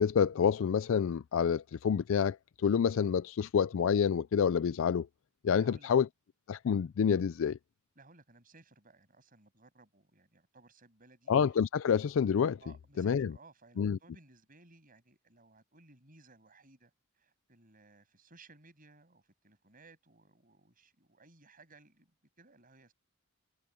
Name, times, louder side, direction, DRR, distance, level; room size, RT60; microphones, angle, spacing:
voice 1, 0.0-2.4 2.6-5.1 5.4-6.1 6.5-7.6 11.3-12.6 13.0-13.3 13.8-14.0, left 7 dB, 65° left, 0.4 m, -28 dB
voice 2, 5.5-5.9 8.0-11.3 12.6-16.9 17.2-22.1 22.4-22.9, right 3 dB, 40° right, 7.6 m, -60 dB
head